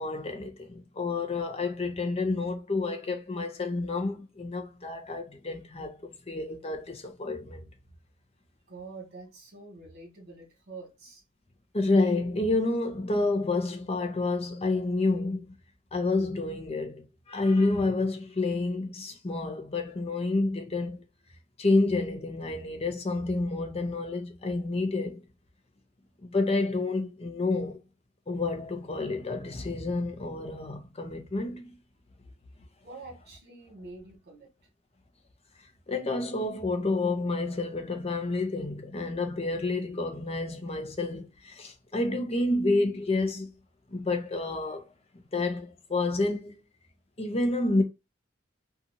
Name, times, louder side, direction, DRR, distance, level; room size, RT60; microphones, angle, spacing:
voice 1, 0.0-7.7 11.7-15.4 15.9-21.0 21.6-25.2 26.2-27.8 28.3-31.7 35.9-43.5 43.9-44.8 45.3-46.5 47.2-47.8, left 2 dB, 30° left, 0.7 m, -29 dB
voice 2, 8.7-11.2 32.8-34.5, right 3 dB, 55° right, 1.4 m, -46 dB
2.8 x 2.5 x 2.5 m
head